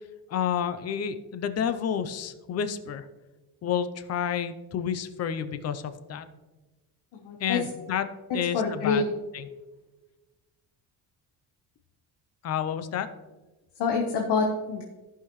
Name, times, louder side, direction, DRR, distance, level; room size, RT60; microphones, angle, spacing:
voice 1, 0.3-3.0 3.6-6.3 7.4-8.1 8.3-9.1 9.3-9.5 12.4-13.1, left 8 dB, 40° left, 11 dB, 0.6 m, -30 dB
voice 2, 7.2-7.6 8.3-9.0 13.8-14.8, left 4 dB, 85° left, 1 dB, 1.1 m, -26 dB
14.0 x 5.8 x 3.1 m, 1.2 s
cardioid pair, 155°, 39 cm